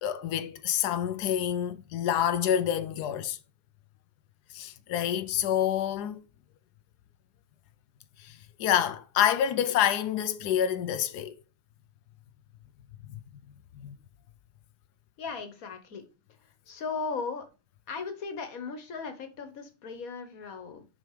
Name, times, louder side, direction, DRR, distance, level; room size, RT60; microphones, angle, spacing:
voice 1, 0.0-3.4 4.5-6.2 8.2-8.3 8.6-11.3 13.8-13.9, left 10 dB, 90° left, 1.2 m, -27 dB
voice 2, 15.2-16.1 16.7-17.5 17.9-20.9, left 5 dB, 60° left, 1.6 m, -37 dB
6.4 x 5.2 x 4.9 m
omnidirectional pair, 1.7 m